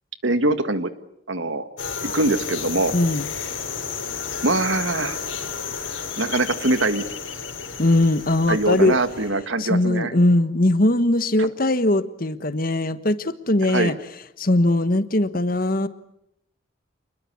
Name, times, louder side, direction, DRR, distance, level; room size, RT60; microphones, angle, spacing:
voice 1, 0.2-0.9 1.3-1.6 2.0-2.9 4.4-5.2 6.2-7.0 8.5-10.1 11.4-11.5 13.6-13.9, right 2 dB, 75° right, 11 dB, 1.8 m, -23 dB
sound 1, 1.8-9.3, left 6 dB, 80° left, 4.4 m, -32 dB
voice 2, 2.9-3.3 7.8-9.0 9.6-13.9 14.4-15.9, left 1 dB, 45° left, 12 dB, 1.3 m, -20 dB
28.5 x 21.0 x 8.6 m, 0.78 s
head